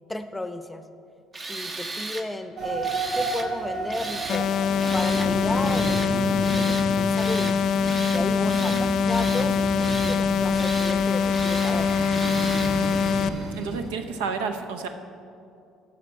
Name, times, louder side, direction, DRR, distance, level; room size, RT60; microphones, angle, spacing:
voice 1, 0.1-0.8 1.5-4.5 4.9-7.6 8.1-11.9, left 2 dB, 10° left, 9 dB, 0.7 m, -33 dB
Tools, 1.3-2.3 2.8-3.5 3.9-4.4 4.8-5.3 5.6-6.1 6.4-6.9 7.1-7.6 7.8-8.2 8.5-9.5 9.8-10.2 10.5-11.0 11.3-11.8 12.1-12.7, right 3 dB, 30° right, 0.8 m, -36 dB
sound 1, 2.6-13.9, right 2 dB, 60° right, 1.7 m, -32 dB
sound 2, 4.3-13.3, left 6 dB, 60° left, 0.3 m, -23 dB
voice 2, 13.4-14.9, right 5 dB, 85° right, 7 dB, 0.6 m, -30 dB
11.5 x 7.0 x 4.4 m, 2.5 s
hypercardioid pair, 65°, 0 cm